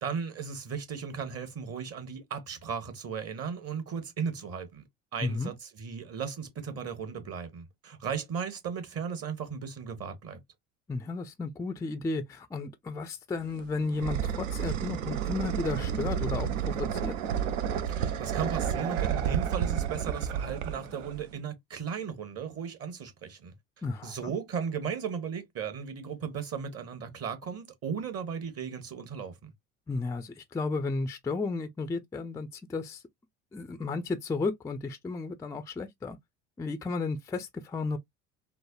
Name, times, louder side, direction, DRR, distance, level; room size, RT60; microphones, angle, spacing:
voice 1, 0.0-4.8 5.1-10.4 17.9-23.5 24.0-29.5, right 6 dB, 40° right, 1.0 m, -36 dB
voice 2, 5.2-5.5 10.9-17.1 23.8-24.3 29.9-33.0 33.5-36.2 36.6-38.0, left 3 dB, 10° left, 0.3 m, -33 dB
sound 1, 13.4-21.4, right 9 dB, 80° right, 0.5 m, -31 dB
3.2 x 2.0 x 2.3 m
hypercardioid pair, 65°, 37 cm